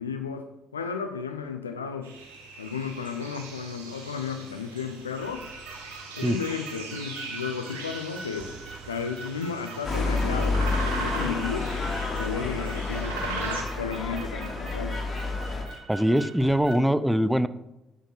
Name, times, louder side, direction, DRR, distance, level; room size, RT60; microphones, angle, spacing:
voice 1, 0.0-2.1 2.6-5.5 6.2-8.5 8.9-11.7 12.2-15.0, left 6 dB, 90° left, 7 dB, 0.7 m, -33 dB
sound 1, 2.0-13.6, right 3 dB, 80° right, 2.1 m, -39 dB
sound 2, 5.2-16.7, right 3 dB, 55° right, 4.3 m, -43 dB
sound 3, 9.8-15.6, left 3 dB, 45° left, 3.1 m, -29 dB
voice 2, 15.9-17.5, equal, 5° right, 15 dB, 0.8 m, -22 dB
11.0 x 9.1 x 4.6 m, 0.96 s
figure-of-eight pair, 45°, 0 cm